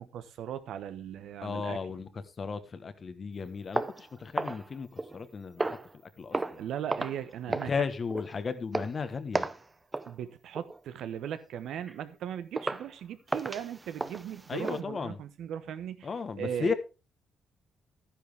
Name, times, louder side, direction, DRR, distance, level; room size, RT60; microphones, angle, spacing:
voice 1, 0.0-1.8 6.6-7.7 10.1-16.1 16.4-16.7, right 9 dB, 75° right, 1.0 m, -38 dB
voice 2, 1.4-5.7 6.2-6.6 7.5-9.5 14.5-15.2 16.0-16.7, left 5 dB, 40° left, 1.2 m, -35 dB
sound 1, 3.7-5.2 5.6-5.9 6.3-6.6 6.9-7.2 7.5-7.8 8.1-8.3 8.7-9.0 9.3-9.6 9.9-10.1 10.6-10.8 11.3-11.4 11.9-12.0 12.6-12.9 13.3-14.8, right 2 dB, 20° right, 0.7 m, -34 dB
11.0 x 10.0 x 3.4 m
cardioid pair, 90°, 0 cm